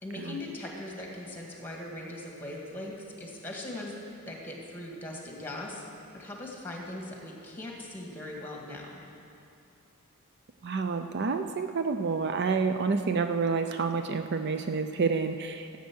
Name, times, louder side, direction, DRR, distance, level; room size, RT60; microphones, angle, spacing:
voice 1, 0.0-3.9 4.3-5.8 6.1-9.0, left 1 dB, 10° left, -1 dB, 1.9 m, -40 dB
voice 2, 10.6-15.8, right 4 dB, 50° right, 7 dB, 0.4 m, -29 dB
15.0 x 8.3 x 6.2 m, 2.8 s
head